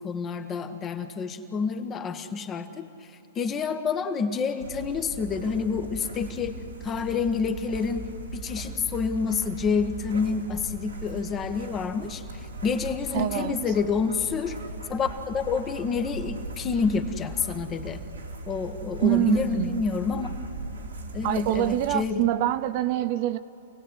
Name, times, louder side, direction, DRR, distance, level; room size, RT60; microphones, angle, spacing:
voice 1, 0.0-2.9 3.3-6.6 6.8-8.0 8.3-12.2 12.6-14.6 14.9-18.0 18.5-20.3 21.1-22.3, left 5 dB, 25° left, 1.5 m, -28 dB
sound 1, 4.6-22.0, right 2 dB, 90° right, 2.9 m, -39 dB
voice 2, 13.1-13.6 19.0-19.8 21.2-23.4, right 13 dB, 50° right, 0.7 m, -25 dB
28.0 x 17.5 x 8.1 m
hypercardioid pair, 120°, 0 cm